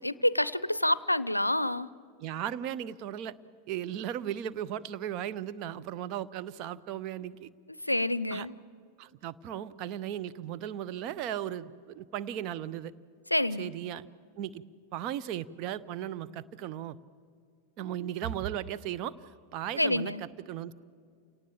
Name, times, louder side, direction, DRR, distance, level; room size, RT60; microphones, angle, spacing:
voice 1, 0.0-1.9 7.9-8.5 13.3-13.7 19.8-20.2, left 1 dB, 85° left, 19 dB, 0.5 m, -27 dB
voice 2, 2.2-3.3 3.7-7.5 8.3-8.5 9.0-12.9 13.6-14.1 14.4-14.6 14.9-17.0 17.8-19.1 19.5-20.7, right 11 dB, 40° right, 13 dB, 0.7 m, -36 dB
28.5 x 18.5 x 7.3 m, 2.3 s
figure-of-eight pair, 90°, 0 cm